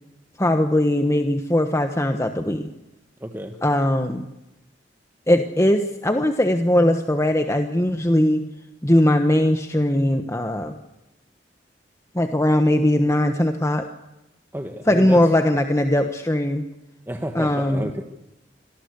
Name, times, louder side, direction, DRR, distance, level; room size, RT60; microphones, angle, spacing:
voice 1, 0.4-2.7 3.6-4.3 5.3-8.5 8.8-10.7 12.1-13.8 14.9-16.6 17.3-17.9, left 1 dB, 15° left, 7 dB, 1.2 m, -20 dB
voice 2, 3.2-3.6 14.5-15.2 17.1-18.0, equal, 10° right, 5 dB, 1.4 m, -31 dB
26.0 x 18.5 x 8.3 m, 0.97 s
head